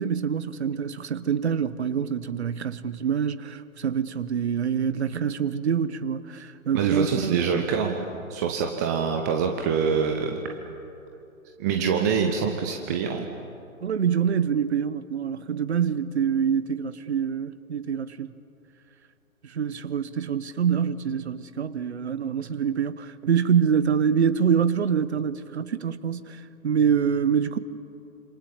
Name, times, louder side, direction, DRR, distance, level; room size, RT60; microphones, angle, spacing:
voice 1, 0.0-7.5 13.8-18.3 19.4-27.6, right 7 dB, 50° right, 1.2 m, -25 dB
voice 2, 6.7-10.4 11.6-13.3, right 6 dB, 15° right, 0.7 m, -25 dB
26.5 x 26.5 x 7.3 m
figure-of-eight pair, 130°, 42 cm